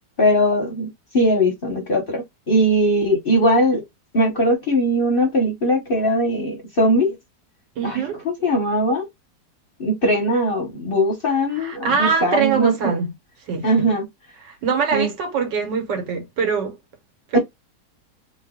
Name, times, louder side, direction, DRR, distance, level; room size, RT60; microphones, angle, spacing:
voice 1, 0.2-0.9 1.1-3.8 4.1-7.1 7.8-9.0 9.8-12.7 13.6-14.0 14.9-15.1 17.3-17.4, equal, 45° left, 0.7 m, -20 dB
voice 2, 7.8-8.2 11.5-13.1 13.5-13.9 14.4-16.8 17.3-17.4, right 5 dB, 85° right, 1.6 m, -23 dB
3.2 x 2.2 x 3.5 m
omnidirectional pair, 1.9 m